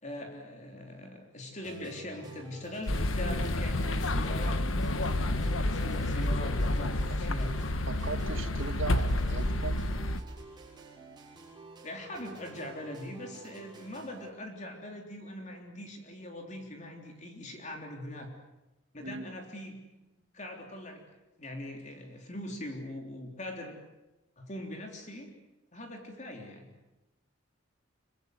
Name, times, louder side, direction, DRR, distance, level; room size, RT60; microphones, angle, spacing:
voice 1, 0.0-4.6 5.7-7.5 11.8-18.3 18.9-19.8 20.3-21.0 21.4-23.8 24.4-25.3 25.7-26.7, left 1 dB, 35° left, 2 dB, 3.6 m, -42 dB
sound 1, 1.6-14.3, right 3 dB, 20° right, 6.9 m, -50 dB
sound 2, 2.9-10.2, left 1 dB, 85° left, 1.5 m, -29 dB
voice 2, 7.9-9.8 19.0-19.3, right 3 dB, 75° right, 8 dB, 1.8 m, -38 dB
25.5 x 24.0 x 8.1 m, 1.0 s
head